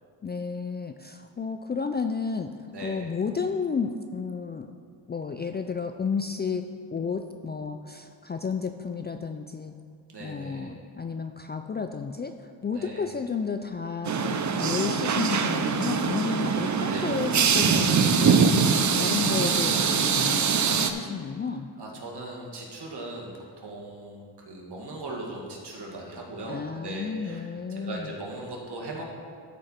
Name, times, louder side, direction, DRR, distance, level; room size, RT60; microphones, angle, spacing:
voice 1, 0.2-2.5 2.8-4.7 5.1-9.8 10.2-21.7 26.5-28.1, left 5 dB, 25° left, 7 dB, 0.3 m, -32 dB
voice 2, 2.7-3.1 10.1-10.7 12.7-13.1 16.9-17.1 18.9-19.1 21.8-27.5 27.8-29.0, right 2 dB, 55° right, -2 dB, 2.1 m, -39 dB
sound 1, 14.0-20.9, right 6 dB, 40° right, 0.7 m, -23 dB
13.5 x 4.6 x 4.4 m, 2.1 s
cardioid pair, 65°, 46 cm